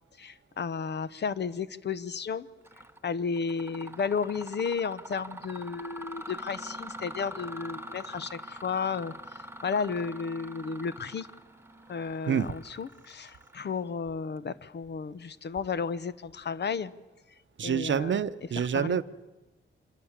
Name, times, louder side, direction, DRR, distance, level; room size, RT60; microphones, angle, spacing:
voice 1, 0.2-2.5 3.0-11.3 11.9-16.9 17.6-18.2 18.7-19.0, left 5 dB, 60° left, 15 dB, 0.8 m, -33 dB
Mechanisms, 2.6-3.0 3.3-13.9, equal, 10° right, 0.9 m, -44 dB
voice 2, 17.6-19.0, right 8 dB, 70° right, 13 dB, 0.7 m, -27 dB
26.5 x 22.0 x 7.4 m, 1.2 s
wide cardioid pair, 160°, 20 cm